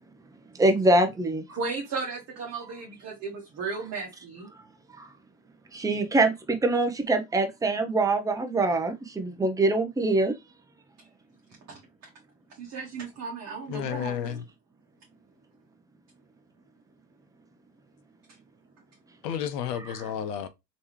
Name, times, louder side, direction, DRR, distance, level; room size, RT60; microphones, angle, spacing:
voice 1, 0.6-1.4 5.0-5.1 5.7-10.3 19.7-20.1, right 2 dB, 5° right, 0.6 m, -24 dB
voice 2, 1.5-4.5 12.6-14.4, right 4 dB, 30° right, 1.4 m, -35 dB
voice 3, 13.7-14.4 19.2-20.5, left 9 dB, 75° left, 1.0 m, -31 dB
3.4 x 3.2 x 3.0 m
hypercardioid pair, 100°, 49 cm